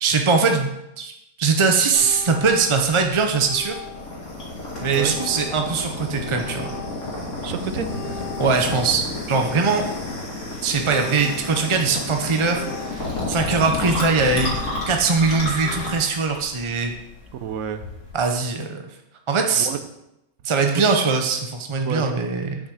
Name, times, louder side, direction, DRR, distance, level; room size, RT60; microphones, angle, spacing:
voice 1, 0.0-0.7 1.0-1.1 1.4-3.7 4.8-6.7 8.4-9.9 10.6-14.5 14.9-16.9 18.1-18.8 19.3-19.7 20.4-22.6, right 4 dB, 35° right, 4 dB, 0.4 m, -21 dB
sound 1, 1.9-3.0 3.4-4.2 4.7-5.8 6.4-7.2 7.7-9.0 9.4-10.1 10.7-11.8 12.4-13.3 13.8-15.1 15.5-16.0, left 4 dB, 80° left, 1.8 m, -40 dB
sound 2, 1.9-18.2, left 2 dB, 55° left, 3.0 m, -31 dB
voice 2, 7.4-8.0 17.4-17.9 19.5-19.8 20.7-21.2 21.8-22.1, right 8 dB, 75° right, 10 dB, 1.1 m, -30 dB
6.3 x 6.1 x 6.4 m, 0.88 s
omnidirectional pair, 1.5 m